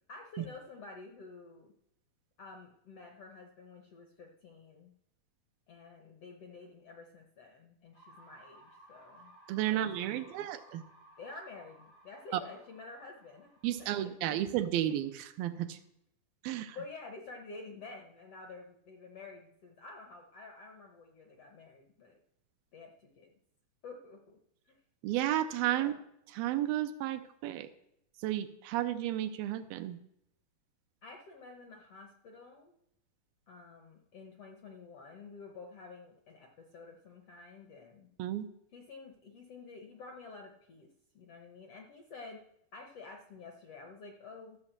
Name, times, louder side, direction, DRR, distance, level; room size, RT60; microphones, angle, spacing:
voice 1, 0.1-1.7 2.4-4.9 5.7-9.3 9.7-10.5 11.2-13.5 13.8-14.4 16.7-22.2 22.7-23.3 23.8-24.4 24.7-24.8 25.7-26.0 31.0-32.7 33.5-38.1 38.7-40.9 41.1-42.4 42.7-44.6, left 3 dB, 70° left, 3 dB, 1.5 m, -50 dB
sound 1, 7.9-15.8, right 1 dB, 85° left, 6.6 m, -60 dB
voice 2, 9.5-10.8 12.3-12.4 13.6-15.8 16.4-16.8 25.0-25.9 26.3-27.7 28.2-30.0 38.2-38.5, right 12 dB, 85° right, 9 dB, 2.5 m, -32 dB
13.5 x 5.2 x 7.4 m, 0.78 s
omnidirectional pair, 4.2 m